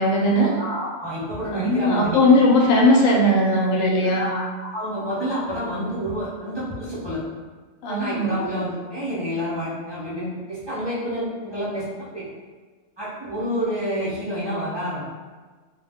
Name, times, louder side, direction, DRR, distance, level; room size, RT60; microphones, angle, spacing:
voice 1, 0.0-0.5 1.5-4.3 7.8-8.4, left 1 dB, 85° left, -2 dB, 1.0 m, -18 dB
voice 2, 0.6-2.2 4.0-7.2 7.9-12.3 13.0-15.1, equal, 35° right, -10 dB, 0.4 m, -29 dB
2.4 x 2.1 x 3.4 m, 1.4 s
omnidirectional pair, 1.3 m